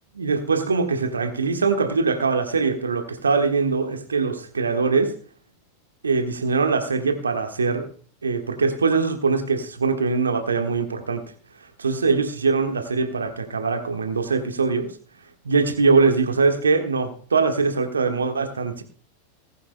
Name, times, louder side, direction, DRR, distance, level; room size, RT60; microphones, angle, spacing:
voice 1, 0.1-5.1 6.0-7.9 8.2-11.2 11.8-14.9 15.4-18.8, right 4 dB, 75° right, 7 dB, 1.5 m, -22 dB
19.0 x 10.5 x 2.2 m, 0.42 s
figure-of-eight pair, 90°, 0 cm